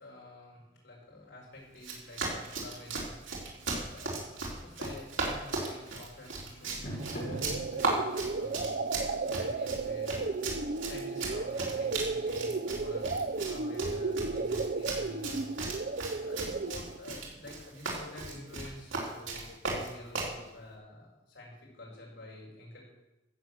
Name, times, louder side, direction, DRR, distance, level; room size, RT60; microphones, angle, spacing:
voice 1, 0.0-8.9 9.2-15.5 15.7-22.8, left 2 dB, 70° left, -4 dB, 6.3 m, -49 dB
Run, 1.8-20.4, right 3 dB, 80° right, 4.1 m, -37 dB
sound 1, 3.0-13.1, equal, 50° left, 5.8 m, -49 dB
sound 2, 7.0-17.0, right 3 dB, 50° right, 0.6 m, -34 dB
14.0 x 8.1 x 7.8 m, 1.0 s
head